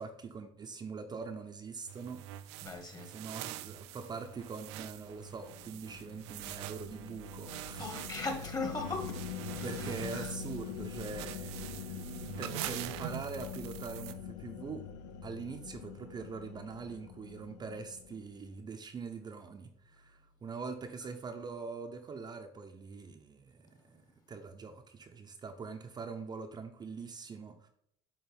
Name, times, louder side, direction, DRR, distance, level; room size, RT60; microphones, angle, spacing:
voice 1, 0.0-2.2 2.5-2.7 3.1-8.2 9.6-14.9 15.2-27.7, right 4 dB, 30° right, 0.7 m, -43 dB
sound 1, 1.9-14.1, right 14 dB, 85° right, 0.4 m, -45 dB
voice 2, 2.6-3.1 7.8-9.2 9.5-9.9 10.1-10.3, left 3 dB, 25° left, 1.5 m, -38 dB
sound 2, 4.3-18.7, left 7 dB, 80° left, 0.5 m, -45 dB
9.0 x 3.1 x 3.4 m
supercardioid pair, 100°, 14 cm